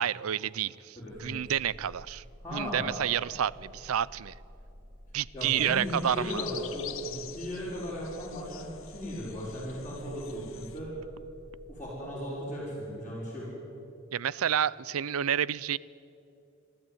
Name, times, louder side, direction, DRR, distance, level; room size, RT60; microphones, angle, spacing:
voice 1, 0.0-2.2 2.5-4.3 5.1-6.4 14.1-15.8, right 9 dB, 85° right, 22 dB, 0.5 m, -29 dB
voice 2, 0.9-1.4 2.4-2.9 5.3-10.9 11.7-13.5, equal, 10° left, -10 dB, 5.1 m, -37 dB
sound 1, 1.1-11.9, equal, 35° right, 2.2 m, -51 dB
sound 2, 5.4-10.8, left 11 dB, 70° left, 1.1 m, -45 dB
29.0 x 12.0 x 9.2 m, 2.8 s
head